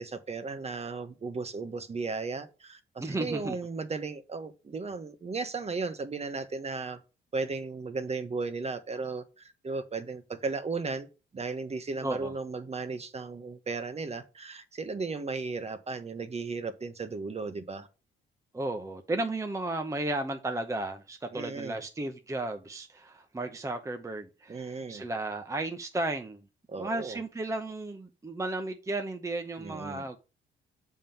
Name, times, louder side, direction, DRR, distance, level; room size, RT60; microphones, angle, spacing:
voice 1, 0.0-7.0 7.3-11.1 11.3-17.9 21.3-21.8 24.5-25.0 26.7-27.2 29.6-30.1, right 4 dB, 30° right, 1.1 m, -35 dB
voice 2, 3.0-3.6 12.0-12.3 18.5-26.4 26.8-30.2, right 2 dB, 15° right, 0.8 m, -34 dB
7.3 x 3.7 x 5.7 m
cardioid pair, 90°, 20 cm